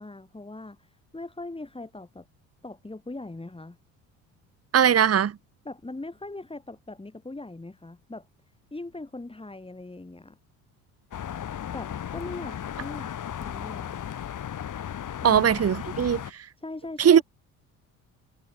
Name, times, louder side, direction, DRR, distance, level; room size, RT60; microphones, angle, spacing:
voice 1, 0.0-2.3 2.6-3.8 5.7-8.3 8.7-10.4 11.7-13.1 13.4-14.2 15.2-15.5 16.6-17.2, left 2 dB, 15° left, 7.2 m, -40 dB
voice 2, 4.7-5.3 15.2-16.2 17.0-17.2, right 8 dB, 35° right, 1.8 m, -19 dB
sound 1, 11.1-16.3, left 9 dB, 50° left, 5.9 m, -35 dB
hypercardioid pair, 65°, 40 cm